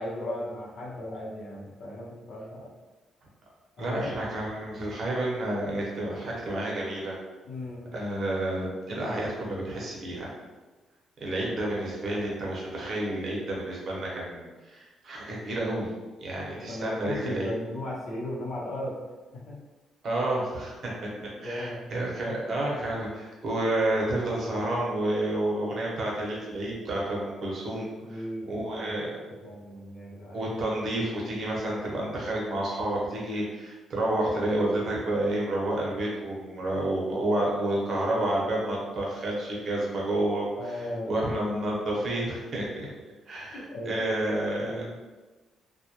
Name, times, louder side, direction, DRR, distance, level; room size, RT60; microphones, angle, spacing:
voice 1, 0.0-2.7 3.8-4.2 7.4-7.9 16.4-19.0 19.3-19.6 21.1-22.4 28.0-28.9 29.3-30.5 40.6-41.1 42.8-42.9 43.5-44.1 44.5-44.9, left 1 dB, 70° left, -5 dB, 0.8 m, -37 dB
voice 2, 3.8-7.1 7.9-10.3 11.2-15.9 16.2-17.5 20.0-20.9 21.4-29.1 30.3-42.7 43.3-44.9, right 1 dB, 60° right, -4 dB, 0.8 m, -30 dB
2.3 x 2.1 x 2.9 m, 1.3 s
cardioid pair, 70°, 0 cm